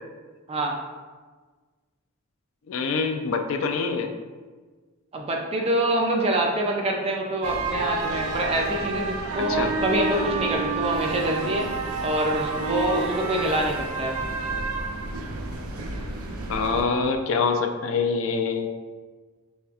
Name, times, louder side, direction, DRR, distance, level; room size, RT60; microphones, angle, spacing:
voice 1, 2.7-4.1 9.5-9.7 16.5-18.7, left 4 dB, 60° left, 5 dB, 0.3 m, -25 dB
voice 2, 5.1-11.7 12.0-14.1, right 1 dB, 25° right, 1 dB, 0.3 m, -25 dB
sound 1, 7.4-16.8, right 3 dB, 80° right, 0.5 m, -29 dB
5.4 x 3.3 x 2.3 m, 1.4 s
head